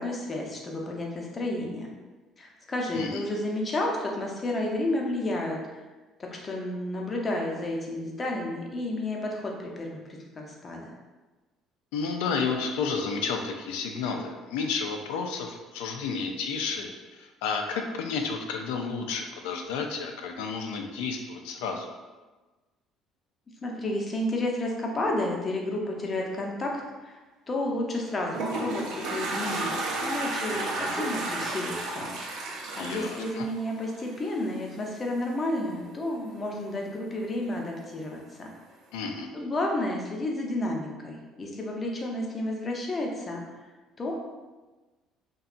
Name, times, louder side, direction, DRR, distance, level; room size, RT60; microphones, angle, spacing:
voice 1, 0.0-1.9 2.4-5.6 6.2-10.9 23.6-27.2 27.5-32.4 32.8-38.5 39.3-43.4 44.0-44.2, left 1 dB, 35° left, 0 dB, 0.6 m, -31 dB
voice 2, 11.9-21.9 32.8-33.5 38.9-39.3, left 5 dB, 80° left, 3 dB, 0.3 m, -31 dB
Toilet flush, 28.0-34.3, right 2 dB, 70° right, 0.5 m, -32 dB
2.7 x 2.2 x 2.5 m, 1.2 s
hypercardioid pair, 65°, 0 cm